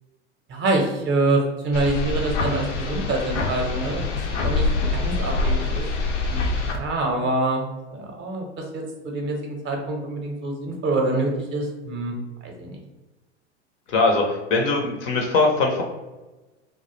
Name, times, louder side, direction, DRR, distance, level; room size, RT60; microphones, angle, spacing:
voice 1, 0.5-5.8 6.2-12.1 12.4-12.8, right 2 dB, 30° right, 1 dB, 0.6 m, -26 dB
sound 1, 1.7-6.8, left 3 dB, 85° left, 0.5 m, -25 dB
voice 2, 13.9-15.8, left 3 dB, 35° left, 2 dB, 0.5 m, -21 dB
2.3 x 2.1 x 3.0 m, 1.1 s
hypercardioid pair, 95°, 35 cm